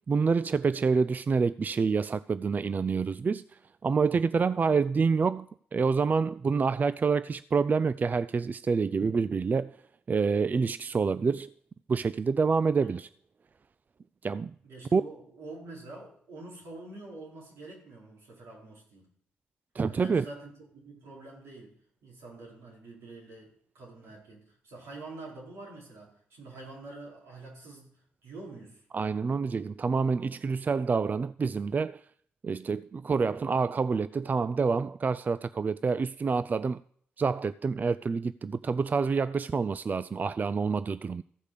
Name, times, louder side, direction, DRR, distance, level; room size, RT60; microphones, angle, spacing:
voice 1, 0.0-9.8 10.1-11.5 11.9-13.1 14.2-14.5 14.9-15.0 19.7-20.2 28.9-32.0 32.4-36.8 37.2-41.2, right 5 dB, 40° right, 0.3 m, -27 dB
voice 2, 12.5-13.0 14.6-19.1 19.9-21.8 22.0-28.8, right 2 dB, 85° right, 4.3 m, -46 dB
14.5 x 5.1 x 6.6 m
supercardioid pair, 55°, 4 cm